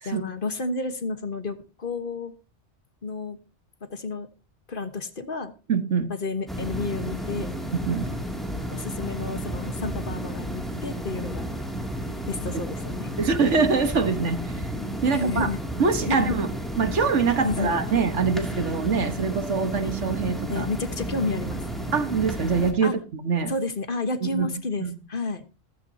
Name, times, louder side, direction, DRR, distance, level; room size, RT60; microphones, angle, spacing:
voice 1, 0.0-2.3 3.0-3.4 3.9-4.3 4.7-5.5 6.1-7.5 8.7-11.5 12.3-13.1 15.1-15.6 16.1-16.4 17.4-17.8 20.5-21.6 22.8-22.9 23.5-25.4, left 3 dB, 50° left, 9 dB, 1.4 m, -30 dB
voice 2, 5.7-6.1 7.7-8.1 13.2-14.6 15.0-15.5 15.8-16.5 16.8-20.7 21.9-23.6 24.2-24.5 24.8-24.9, right 5 dB, 80° right, 9 dB, 1.7 m, -24 dB
sound 1, 6.5-22.7, equal, ahead, 2.5 m, -32 dB
15.0 x 14.5 x 2.8 m, 0.31 s
omnidirectional pair, 1.2 m